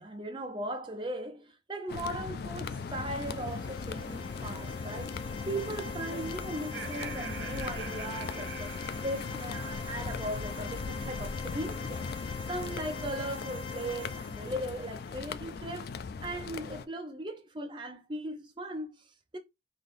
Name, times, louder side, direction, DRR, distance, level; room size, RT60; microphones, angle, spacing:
voice 1, 0.0-5.2 5.4-12.0 12.5-15.9 16.2-19.4, right 1 dB, 25° right, 0.7 m, -38 dB
sound 1, 1.9-16.9, left 5 dB, 55° left, 0.3 m, -39 dB
sound 2, 2.9-15.6, left 3 dB, 25° left, 0.8 m, -44 dB
Laughter, 6.5-9.8, right 5 dB, 90° right, 1.1 m, -44 dB
4.0 x 2.8 x 3.4 m
head